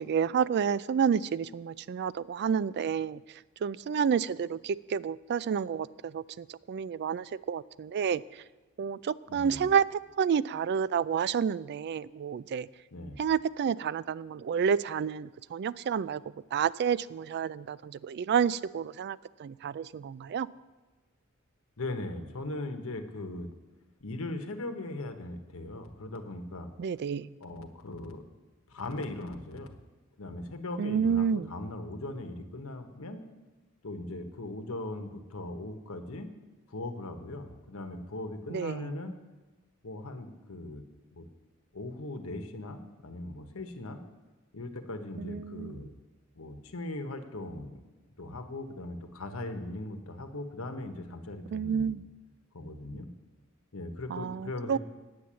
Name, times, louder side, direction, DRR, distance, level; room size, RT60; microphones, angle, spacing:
voice 1, 0.0-3.2 3.6-8.4 8.8-12.7 13.2-16.2 16.5-20.5 26.8-27.3 30.8-31.5 38.5-38.9 45.2-45.8 51.5-52.0 54.1-54.8, right 7 dB, 50° right, 19 dB, 0.3 m, -30 dB
voice 2, 9.3-9.7 12.9-13.2 21.8-23.5 24.0-26.7 27.4-28.2 28.7-29.7 30.2-33.2 33.8-36.3 36.7-39.2 39.8-40.8 41.1-41.3 41.7-44.0 44.5-45.9 46.3-47.8 48.2-52.0 52.5-53.1 53.7-54.8, left 2 dB, 75° left, 7 dB, 1.1 m, -39 dB
9.4 x 8.4 x 7.5 m, 1.2 s
head